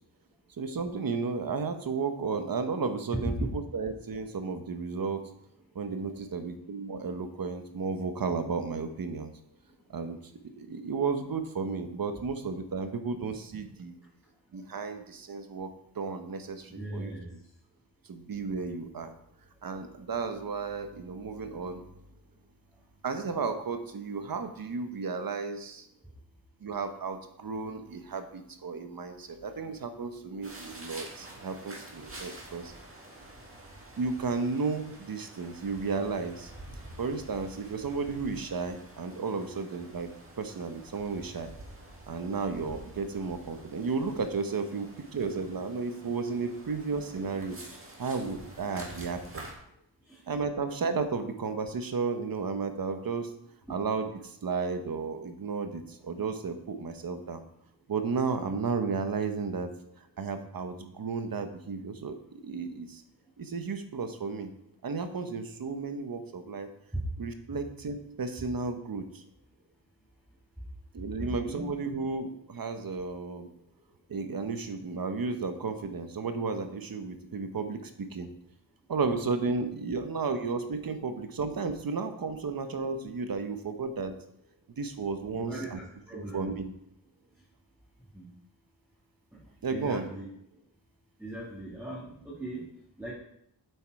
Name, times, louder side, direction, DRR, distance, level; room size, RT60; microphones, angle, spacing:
voice 1, 0.6-5.2 5.7-9.3 9.9-10.2 10.5-14.0 14.5-17.1 18.0-19.1 19.6-21.8 23.0-25.9 26.6-32.7 34.0-36.5 37.0-40.1 40.4-41.5 42.1-47.6 48.0-49.5 50.3-53.3 53.7-57.4 57.9-59.7 60.0-63.0 63.4-64.5 64.8-66.7 67.2-69.2 70.9-73.5 74.1-78.3 78.9-84.1 84.8-85.8 86.3-86.7 89.6-90.1, right 4 dB, 55° right, 7 dB, 1.0 m, -33 dB
voice 2, 16.8-17.3 50.1-50.2 71.2-71.7 85.3-86.6 88.1-88.2 89.7-90.3 91.2-92.7 93.0-93.1, right 2 dB, 5° right, -8 dB, 2.0 m, -39 dB
sound 1, 30.4-49.5, right 1 dB, 30° right, 1.9 m, -48 dB
8.1 x 7.7 x 4.8 m, 0.75 s
wide cardioid pair, 165°, 42 cm